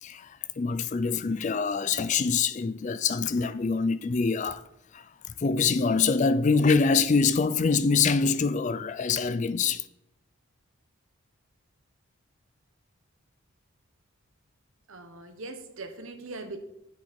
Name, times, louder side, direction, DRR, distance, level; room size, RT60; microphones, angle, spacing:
voice 1, 0.0-4.6 4.9-9.9, left 5 dB, 35° left, 0.4 m, -25 dB
voice 2, 14.9-16.6, right 2 dB, 70° right, 1.3 m, -40 dB
9.2 x 7.7 x 4.4 m
head